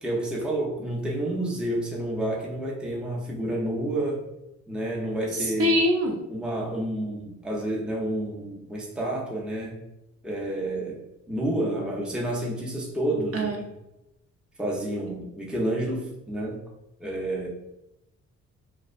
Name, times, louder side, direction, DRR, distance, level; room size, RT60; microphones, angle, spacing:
voice 1, 0.0-4.2 4.7-5.8 6.3-9.8 10.2-11.0 11.3-13.7 14.6-16.6 17.0-17.5, right 1 dB, 5° right, -3 dB, 0.5 m, -29 dB
voice 2, 5.6-6.1 13.3-13.5, equal, 55° right, 0 dB, 0.6 m, -22 dB
2.5 x 2.0 x 2.4 m, 0.90 s
cardioid pair, 90°, 30 cm